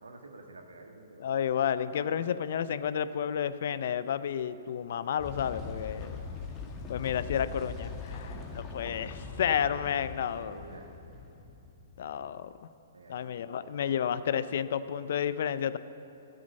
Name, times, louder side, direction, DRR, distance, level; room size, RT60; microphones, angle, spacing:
voice 1, 0.0-1.3 2.1-2.8 8.1-8.5 9.6-10.9 12.9-14.0, right 2 dB, 85° right, 3 dB, 1.5 m, -50 dB
voice 2, 1.2-6.2 6.9-10.5 12.0-12.5 13.1-15.8, left 8 dB, 60° left, 15 dB, 0.5 m, -31 dB
sound 1, 5.2-12.6, left 5 dB, 25° left, 1.8 m, -41 dB
13.5 x 6.4 x 7.9 m, 2.9 s
hypercardioid pair, 120°, 0 cm